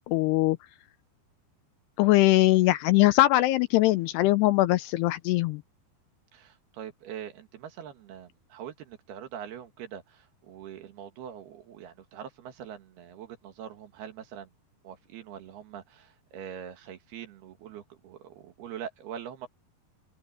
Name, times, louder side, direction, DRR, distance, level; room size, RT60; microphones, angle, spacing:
voice 1, 0.1-0.6 2.0-5.6, left 17 dB, 80° left, 2.5 m, -21 dB
voice 2, 6.3-14.5 14.8-19.5, right 9 dB, 65° right, 3.5 m, -43 dB
open air
omnidirectional pair, 5.1 m